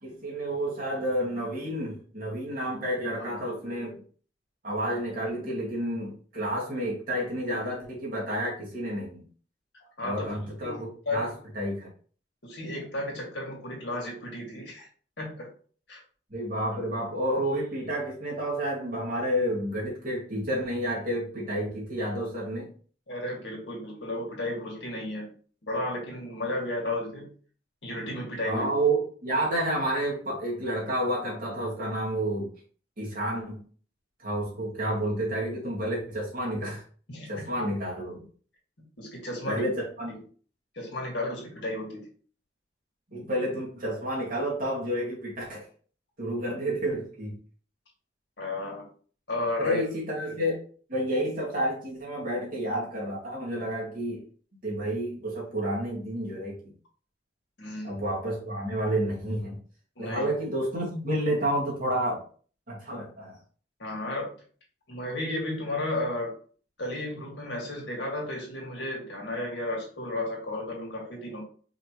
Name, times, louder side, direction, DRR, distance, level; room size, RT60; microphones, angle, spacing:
voice 1, 0.0-4.0 4.6-9.2 10.0-11.9 16.3-22.7 28.4-32.5 33.0-33.6 34.2-36.8 37.3-38.2 39.5-40.1 43.1-45.7 46.2-47.4 49.6-50.6 50.9-54.2 54.6-56.7 57.8-59.6 60.0-62.2 62.7-63.4, right 1 dB, 50° right, -4 dB, 2.0 m, -30 dB
voice 2, 10.6-11.3 12.4-14.9 15.2-15.5 15.9-16.0 23.1-25.3 25.6-27.3 27.8-28.7 37.1-37.3 39.0-39.7 40.1-40.2 40.7-42.0 48.4-48.8 49.3-49.8 57.6-58.0 60.0-60.2 63.8-64.3 64.9-66.3 66.8-71.4, left 1 dB, 85° left, -2 dB, 1.9 m, -33 dB
4.9 x 3.0 x 3.1 m, 0.43 s
head